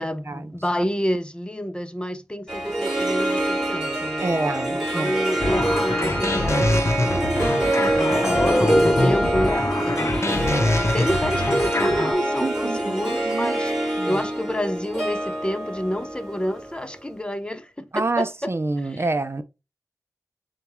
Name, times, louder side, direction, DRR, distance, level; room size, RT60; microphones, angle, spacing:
voice 1, 0.0-4.3 4.7-7.5 7.9-10.5 10.9-18.5 18.8-19.0, equal, 15° left, 0.6 m, -29 dB
Harp, 2.5-17.0, right 1 dB, 5° right, 2.9 m, -25 dB
voice 2, 4.2-5.2 12.4-13.6 14.0-14.2 17.9-19.4, right 2 dB, 40° right, 0.5 m, -27 dB
sound 1, 5.4-12.1, left 2 dB, 45° left, 0.8 m, -24 dB
6.8 x 2.4 x 3.0 m
cardioid pair, 40°, 7 cm